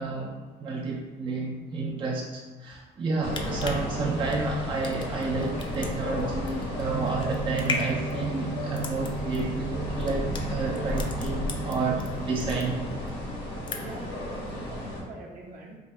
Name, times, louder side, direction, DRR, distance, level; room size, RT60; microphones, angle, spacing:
voice 1, 0.0-12.9, right 3 dB, 30° right, -1 dB, 0.4 m, -31 dB
sound 1, 3.1-12.1 12.4-13.1 13.4-14.1 14.5-14.6, left 4 dB, 30° left, 0.5 m, -37 dB
sound 2, 3.2-15.0, left 1 dB, 90° left, 1.5 m, -33 dB
sound 3, 6.9-12.3, right 7 dB, 80° right, 0.5 m, -36 dB
voice 2, 13.8-15.8, right 2 dB, 55° right, -1 dB, 0.9 m, -44 dB
3.6 x 2.5 x 4.1 m, 1.3 s
cardioid pair, 110°, 17 cm